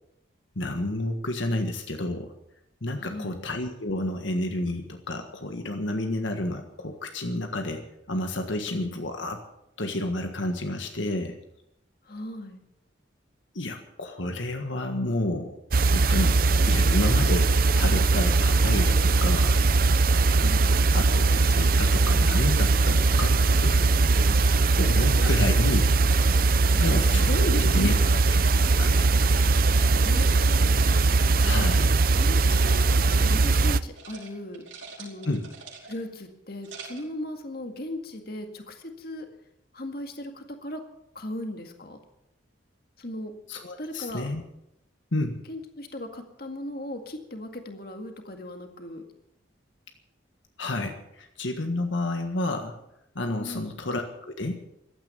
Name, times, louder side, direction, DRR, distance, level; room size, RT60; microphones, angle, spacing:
voice 1, 0.5-2.3 2.8-9.4 9.8-11.4 13.5-15.5 15.8-16.4 16.6-19.6 20.9-23.4 23.6-23.8 24.8-25.8 26.8-27.3 27.6-27.9 28.4-29.1 31.4-32.0 35.2-35.5 43.5-44.4 45.1-45.4 50.6-52.7 53.1-54.6, left 1 dB, 75° left, 5 dB, 1.6 m, -30 dB
voice 2, 3.0-3.4 12.1-12.6 16.6-16.7 20.4-21.0 24.3-25.3 26.6-28.1 29.9-31.7 32.1-34.7 35.0-35.4 35.8-39.3 39.7-40.8 41.2-42.0 43.0-43.3 43.8-44.3 45.5-49.0 53.4-53.8, left 1 dB, 50° left, 5 dB, 2.0 m, -37 dB
sound 1, 15.7-33.8, right 3 dB, 45° right, 0.6 m, -20 dB
sound 2, 29.5-32.1 32.4-33.7 33.9-34.3 34.5-36.1 36.5-37.1, right 4 dB, 80° right, 5.0 m, -45 dB
15.5 x 12.5 x 7.0 m, 0.81 s
head